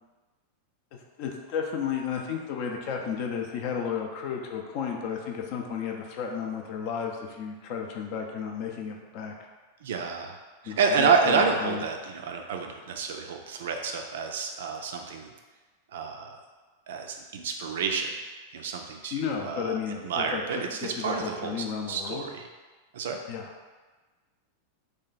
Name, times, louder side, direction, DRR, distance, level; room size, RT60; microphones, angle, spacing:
voice 1, 0.9-9.4 10.6-11.8 19.1-22.3 23.3-23.5, left 7 dB, 45° left, 2 dB, 0.5 m, -33 dB
voice 2, 9.8-10.4 10.6-15.3 15.9-16.4 16.9-18.1 18.5-19.1 19.5-19.6 20.0-22.4 22.9-23.2, right 5 dB, 60° right, 3 dB, 0.4 m, -28 dB
3.0 x 2.2 x 3.9 m, 1.3 s
figure-of-eight pair, 90°, 0 cm